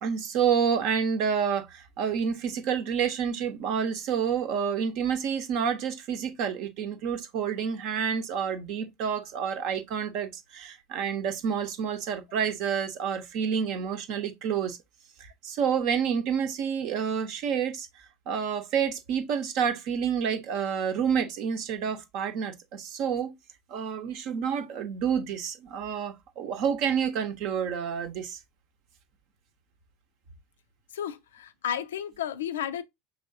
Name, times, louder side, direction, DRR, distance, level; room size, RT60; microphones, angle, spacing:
voice 1, 0.0-14.8 15.2-17.9 18.3-23.3 23.7-28.4, right 7 dB, 50° right, 0.8 m, -29 dB
voice 2, 30.9-32.8, left 10 dB, 70° left, 0.4 m, -32 dB
5.3 x 3.4 x 2.6 m
figure-of-eight pair, 75°, 0 cm